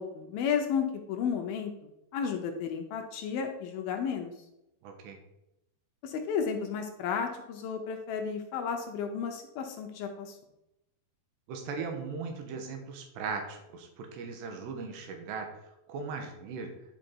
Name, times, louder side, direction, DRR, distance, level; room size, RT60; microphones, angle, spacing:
voice 1, 0.0-4.3 6.0-10.3, left 6 dB, 75° left, 4 dB, 2.5 m, -33 dB
voice 2, 4.8-5.2 11.5-15.6 15.9-16.7, right 5 dB, 85° right, 4 dB, 3.3 m, -38 dB
10.0 x 5.2 x 4.5 m, 0.88 s
omnidirectional pair, 4.7 m